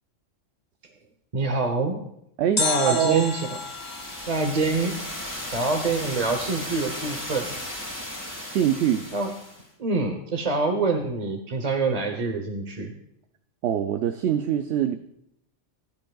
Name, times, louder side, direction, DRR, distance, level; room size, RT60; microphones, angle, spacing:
voice 1, 1.3-2.0 2.6-3.6 4.3-4.9 5.5-7.6 9.1-9.3 9.8-12.9, right 3 dB, 35° right, 4 dB, 0.9 m, -26 dB
voice 2, 2.4-3.3 8.5-9.0 13.6-15.0, right 10 dB, 70° right, 8 dB, 0.8 m, -23 dB
sound 1, 2.6-5.6 5.9-6.0, left 4 dB, 35° left, 1.1 m, -31 dB
sound 2, 3.1-9.7, left 1 dB, 15° left, 1.9 m, -36 dB
17.0 x 10.5 x 2.3 m, 0.76 s
omnidirectional pair, 1.3 m